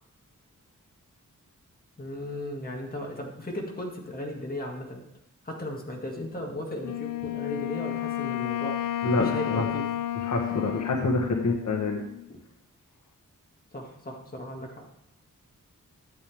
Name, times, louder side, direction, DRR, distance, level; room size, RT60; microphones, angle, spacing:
voice 1, 2.0-5.0 5.4-9.8 13.7-14.9, left 1 dB, 30° left, -1 dB, 2.2 m, -36 dB
Wind instrument woodwind instrument, 6.8-12.3, left 13 dB, 85° left, 0.5 m, -32 dB
voice 2, 9.0-9.6 10.2-12.0, left 3 dB, 60° left, 0 dB, 1.3 m, -26 dB
12.5 x 8.5 x 3.5 m, 0.81 s
wide cardioid pair, 140°, 32 cm